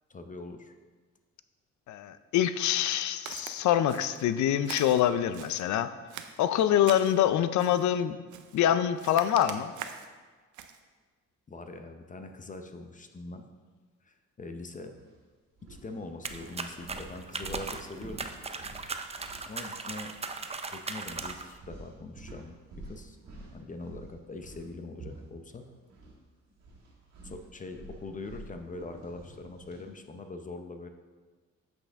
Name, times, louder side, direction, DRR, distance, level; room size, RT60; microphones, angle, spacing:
voice 1, 0.1-0.7 11.5-13.5 14.0-14.9 15.8-18.3 19.5-20.1 20.7-23.2 23.5-25.7 27.2-30.9, left 2 dB, 25° left, 6 dB, 0.6 m, -43 dB
voice 2, 1.9-5.9 6.4-8.2 8.5-9.7, left 10 dB, 70° left, 12 dB, 0.5 m, -25 dB
Walk footsteps, 3.3-3.6 3.9-4.3 4.6-5.7 6.1-7.2 7.6-7.9 8.3-8.6 9.0-10.1 10.5-10.8, right 9 dB, 80° right, 0.6 m, -43 dB
sound 1, 14.9-15.1 15.6-20.1 20.3-20.5 21.1-26.2 26.5-29.9, right 2 dB, 60° right, 1.9 m, -49 dB
sound 2, 16.2-21.6, right 4 dB, 20° right, 0.5 m, -38 dB
7.7 x 6.1 x 3.5 m, 1.4 s
cardioid pair, 90°, 30 cm